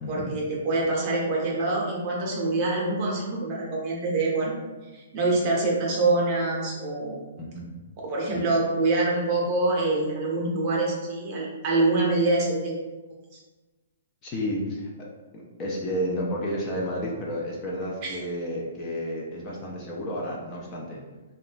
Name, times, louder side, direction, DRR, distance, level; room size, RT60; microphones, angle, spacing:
voice 1, 0.1-4.5 4.9-7.2 8.0-12.7 18.0-18.1, right 2 dB, 30° right, -3 dB, 0.7 m, -25 dB
voice 2, 7.4-7.7 14.2-21.0, equal, 20° left, -3 dB, 0.4 m, -31 dB
2.9 x 2.2 x 2.4 m, 1.2 s
hypercardioid pair, 165°, 0 cm